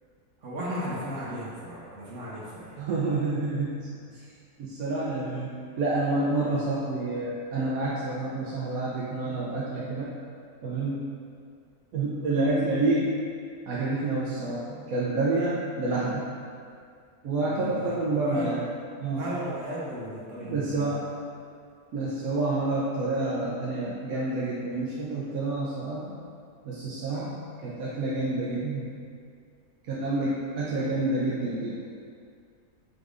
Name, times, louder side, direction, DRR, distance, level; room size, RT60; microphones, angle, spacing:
voice 1, 0.4-2.8 17.4-17.9 18.2-18.5 19.2-20.9, equal, 65° right, -7 dB, 1.2 m, -35 dB
voice 2, 2.8-4.2 4.6-5.5 5.8-10.1 10.6-11.1 11.9-13.1 13.7-16.2 17.2-18.6 19.0-19.2 20.4-21.1 21.9-26.2 26.6-28.9 29.9-31.8, right 2 dB, 85° right, -6 dB, 1.0 m, -28 dB
5.2 x 3.3 x 2.4 m, 2.3 s
omnidirectional pair, 1.5 m